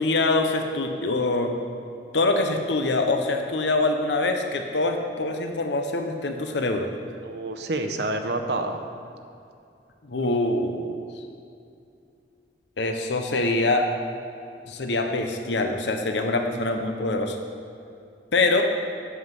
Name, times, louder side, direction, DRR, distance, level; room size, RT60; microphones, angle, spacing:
voice 1, 0.0-1.5 2.1-6.9 10.0-11.0 12.8-13.9 14.7-17.4 18.3-18.6, left 2 dB, 80° left, 5 dB, 0.8 m, -24 dB
voice 2, 7.2-8.8 18.6-18.7, right 2 dB, 65° right, 6 dB, 0.8 m, -28 dB
8.5 x 7.7 x 5.4 m, 2.5 s
head